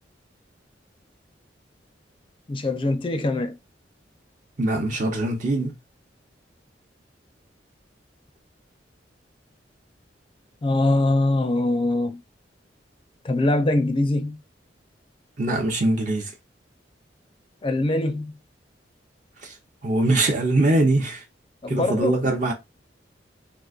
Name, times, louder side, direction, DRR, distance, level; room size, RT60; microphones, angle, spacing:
voice 1, 2.5-3.6 10.6-12.2 13.2-14.4 17.6-18.3 21.6-22.2, left 2 dB, 30° left, 0.4 m, -23 dB
voice 2, 4.6-5.7 15.4-16.3 19.4-19.5 19.8-21.2 21.7-22.5, right 2 dB, 45° right, 0.6 m, -22 dB
3.8 x 2.5 x 2.3 m
head